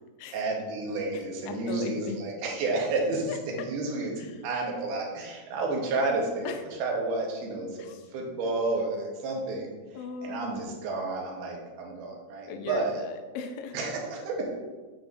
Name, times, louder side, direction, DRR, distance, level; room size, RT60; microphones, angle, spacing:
voice 1, 0.3-3.3 3.6-4.1 4.4-6.5 6.8-9.7 10.2-13.0 13.7-14.6, right 3 dB, 75° right, -1 dB, 3.0 m, -31 dB
voice 2, 1.1-2.2 3.3-3.7 4.2-4.4 6.4-6.6 7.8-8.1 9.9-10.8 12.5-13.8, left 5 dB, 80° left, 6 dB, 2.0 m, -38 dB
9.0 x 6.2 x 2.6 m, 1.3 s
omnidirectional pair, 4.5 m